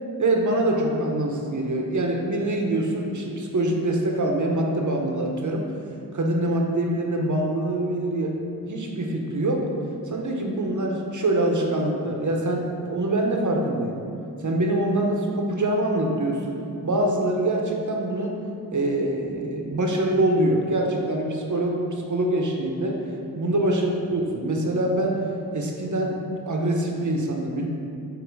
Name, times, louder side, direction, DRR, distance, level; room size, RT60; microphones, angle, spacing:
voice 1, 0.2-5.7 6.1-8.3 8.6-9.6 10.1-14.0 14.4-16.6 16.8-18.4 18.7-21.8 22.1-23.0 23.3-25.2 25.5-26.1 26.5-27.7, right 1 dB, 50° right, 1 dB, 0.9 m, -24 dB
7.9 x 2.7 x 5.3 m, 2.6 s
wide cardioid pair, 75°, 38 cm